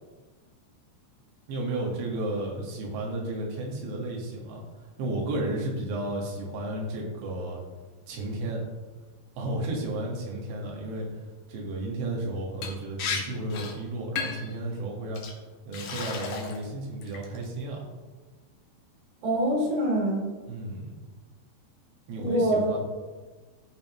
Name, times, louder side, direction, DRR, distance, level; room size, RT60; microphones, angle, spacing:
voice 1, 1.5-7.6 8.1-8.6 9.4-11.1 11.5-15.2 15.7-17.9 20.5-21.0 22.1-22.8, right 1 dB, 80° right, -2 dB, 3.9 m, -33 dB
Liquid, 12.6-12.7 13.0-13.2 13.5-13.7 14.2-14.5 15.1-15.3 15.7-16.6 17.0-17.4, left 5 dB, 75° left, 1.7 m, -33 dB
voice 2, 19.2-20.2 22.2-22.8, right 1 dB, 60° right, -5 dB, 4.8 m, -25 dB
15.0 x 5.6 x 3.0 m, 1.3 s
omnidirectional pair, 5.2 m